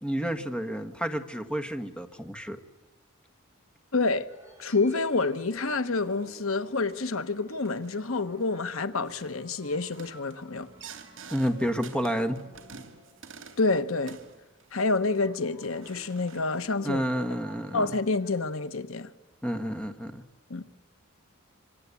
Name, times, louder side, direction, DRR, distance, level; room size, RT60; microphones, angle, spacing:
voice 1, 0.0-2.6 11.3-12.4 16.8-17.9 19.4-20.2, equal, 5° left, 1.5 m, -30 dB
voice 2, 3.9-4.3 4.6-10.7 13.6-14.2 14.7-17.0 17.7-19.1 20.5-20.6, left 3 dB, 75° left, 1.2 m, -28 dB
sound 1, 4.3-14.3 15.0-18.3, equal, 15° right, 5.6 m, -54 dB
sound 2, 6.0-6.4 6.9-7.1 7.7-8.0 8.4-8.7 9.1-9.4 9.8-13.7 14.0-15.1 15.6-16.6, right 5 dB, 60° right, 2.8 m, -49 dB
26.0 x 25.5 x 8.5 m
head